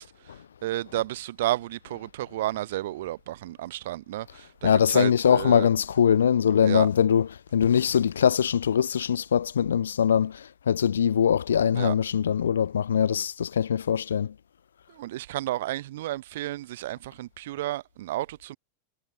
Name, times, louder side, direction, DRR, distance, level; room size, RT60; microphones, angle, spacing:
voice 1, 0.0-5.7 6.6-6.9 11.7-12.0 14.9-18.6, right 15 dB, 55° right, 4.7 m, -32 dB
voice 2, 4.6-7.2 7.5-14.3, left 8 dB, 65° left, 1.8 m, -22 dB
figure-of-eight pair, 90°, 0 cm